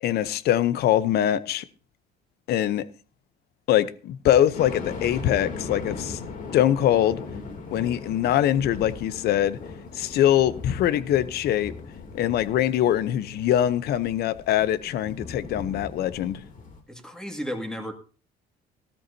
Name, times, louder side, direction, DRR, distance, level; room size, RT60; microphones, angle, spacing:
voice 1, 0.0-1.6 2.5-2.9 3.7-6.2 6.5-7.2 7.7-9.6 9.9-11.7 12.1-16.4, left 11 dB, 70° left, 0.8 m, -23 dB
sound 1, 4.5-16.8, left 4 dB, 50° left, 2.9 m, -39 dB
voice 2, 16.9-17.9, equal, 5° left, 2.1 m, -33 dB
15.5 x 13.5 x 2.8 m
cardioid pair, 110°, 17 cm